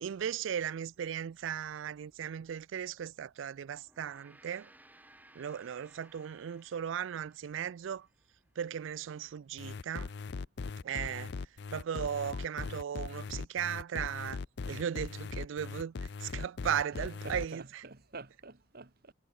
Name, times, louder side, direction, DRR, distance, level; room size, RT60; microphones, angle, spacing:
voice 1, 0.0-4.7 5.4-8.1 8.6-10.1 10.8-11.3 11.7-14.4 14.7-17.6, right 8 dB, 70° right, 0.4 m, -37 dB
Gong, 3.8-8.4, right 1 dB, 10° right, 6.7 m, -61 dB
sound 1, 9.6-17.5, left 4 dB, 60° left, 0.5 m, -40 dB
voice 2, 16.9-19.1, right 3 dB, 50° right, 1.6 m, -48 dB
head